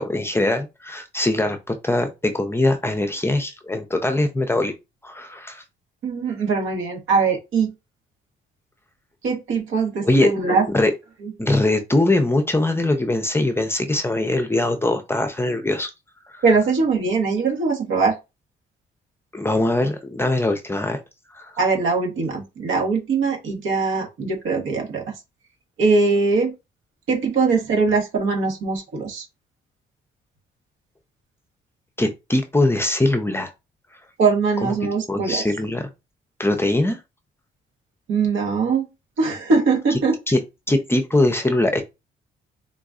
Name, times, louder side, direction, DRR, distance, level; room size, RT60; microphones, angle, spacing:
voice 1, 0.0-4.7 5.0-5.6 10.0-10.3 10.7-10.9 11.4-15.9 16.3-16.4 19.3-21.0 21.3-21.5 32.0-33.5 34.6-34.7 35.1-35.8 36.4-37.0 40.3-40.4 40.7-41.8, left 2 dB, 10° left, 0.6 m, -21 dB
voice 2, 6.0-7.7 9.2-10.6 11.2-11.3 16.4-18.1 21.6-25.1 25.8-26.5 27.1-29.3 34.2-35.4 38.1-38.9 39.2-40.2, right 4 dB, 80° right, 1.3 m, -21 dB
3.9 x 2.5 x 2.4 m
cardioid pair, 90°, 20 cm